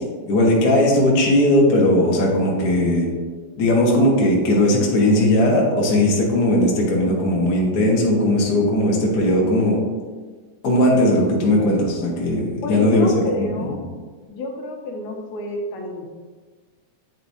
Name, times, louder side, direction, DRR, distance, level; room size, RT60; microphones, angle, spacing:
voice 1, 0.3-3.0 3.6-9.8 10.6-13.5, left 1 dB, 55° left, -3 dB, 1.0 m, -18 dB
voice 2, 12.6-13.8 14.3-16.1, left 2 dB, 75° left, 1 dB, 2.2 m, -29 dB
9.0 x 4.5 x 2.7 m, 1.4 s
omnidirectional pair, 3.5 m